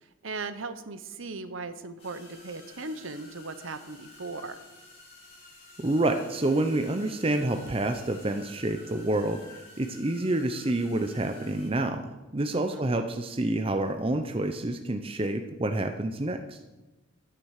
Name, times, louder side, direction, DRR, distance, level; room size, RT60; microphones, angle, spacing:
voice 1, 0.2-4.6 12.5-12.9, right 3 dB, 75° right, 11 dB, 0.9 m, -38 dB
sound 1, 2.0-11.7, left 2 dB, 30° left, 5.5 m, -51 dB
voice 2, 5.8-16.6, right 2 dB, 25° right, 6 dB, 0.6 m, -28 dB
12.0 x 9.6 x 6.5 m, 1.1 s
head